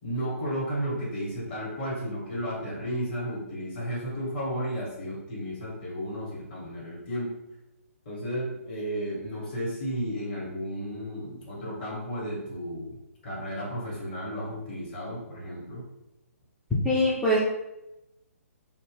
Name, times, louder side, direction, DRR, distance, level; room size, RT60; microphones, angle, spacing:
voice 1, 0.0-7.3 8.0-13.0 13.2-15.8, equal, 40° left, -5 dB, 1.5 m, -33 dB
voice 2, 16.8-17.4, left 1 dB, 5° left, -9 dB, 0.4 m, -22 dB
2.7 x 2.3 x 3.4 m, 0.97 s
figure-of-eight pair, 130°, 8 cm